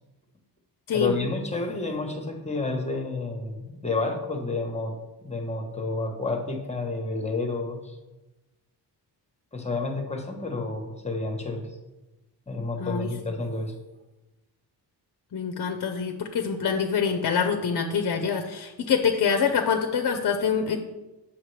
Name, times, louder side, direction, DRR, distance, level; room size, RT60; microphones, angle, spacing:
voice 1, 0.9-4.9 5.2-8.0 9.5-11.7 12.5-13.7, left 3 dB, 15° left, 3 dB, 1.0 m, -30 dB
voice 2, 15.3-20.8, left 6 dB, 55° left, 5 dB, 0.7 m, -25 dB
7.3 x 5.9 x 3.3 m, 1.0 s
wide cardioid pair, 115°, 41 cm